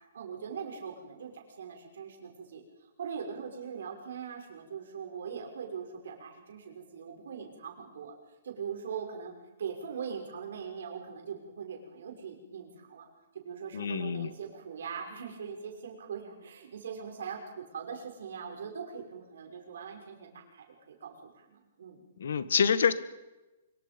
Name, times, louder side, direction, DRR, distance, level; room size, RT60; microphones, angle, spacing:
voice 1, 0.1-2.6 3.0-8.1 8.4-9.3 9.6-13.1 13.4-22.0, right 6 dB, 65° right, 2 dB, 6.2 m, -41 dB
voice 2, 13.7-14.3 22.2-22.9, left 6 dB, 70° left, 14 dB, 1.7 m, -26 dB
25.0 x 23.5 x 5.4 m, 1.1 s
hypercardioid pair, 175°, 0 cm